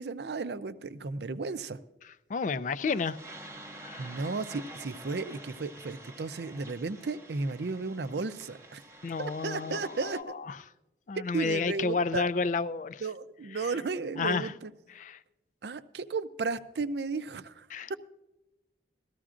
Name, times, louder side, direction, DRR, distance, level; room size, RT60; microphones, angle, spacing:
voice 1, 0.0-1.8 4.0-8.8 9.2-10.2 11.2-12.3 13.0-14.7 15.6-17.9, right 4 dB, 70° right, 12 dB, 0.5 m, -34 dB
voice 2, 2.3-3.2 3.8-4.1 9.0-10.6 11.1-13.0 13.6-13.7 14.2-14.5 15.0-15.2 17.7-17.9, left 4 dB, 45° left, 15 dB, 0.4 m, -31 dB
sound 1, 2.8-10.2, right 1 dB, 15° right, 0.8 m, -48 dB
18.5 x 14.0 x 2.5 m, 0.99 s
head